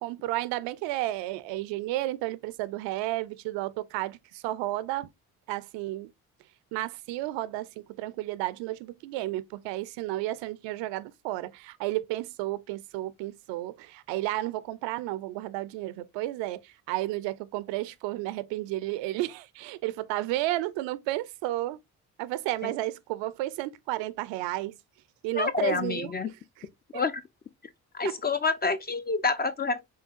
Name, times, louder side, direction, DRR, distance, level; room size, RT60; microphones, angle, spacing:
voice 1, 0.0-5.1 5.5-6.1 6.7-21.8 22.2-24.7 25.2-26.6 26.9-27.0 28.0-28.1, right 16 dB, 70° right, 0.5 m, -32 dB
voice 2, 25.3-26.3 26.9-27.2 27.9-29.9, left 4 dB, 25° left, 0.3 m, -28 dB
6.3 x 2.2 x 2.4 m
hypercardioid pair, 45°, 46 cm